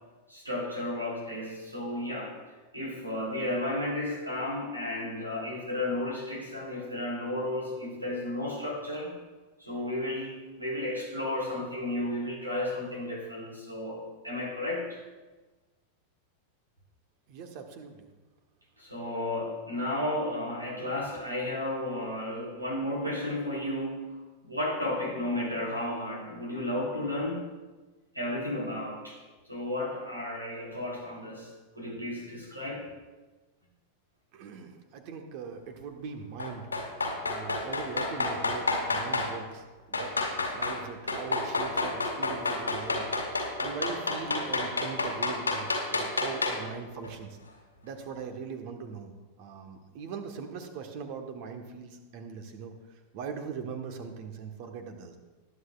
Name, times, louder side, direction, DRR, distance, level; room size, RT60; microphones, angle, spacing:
voice 1, 0.3-2.4 2.7-9.1 9.6-15.0 18.8-24.1 24.4-27.4 28.1-29.2 29.5-31.5 31.7-32.8, left 1 dB, 85° right, -2 dB, 3.4 m, -33 dB
voice 2, 17.3-18.0 34.3-36.7 37.2-47.4 47.8-49.1 49.4-52.7 53.1-55.2, right 6 dB, 45° right, 5 dB, 1.4 m, -41 dB
sound 1, 36.4-39.3 39.9-40.8 41.1-46.7 47.0-47.1, left 3 dB, 80° left, 2.0 m, -29 dB
19.5 x 9.4 x 2.5 m, 1.2 s
figure-of-eight pair, 90°, 0 cm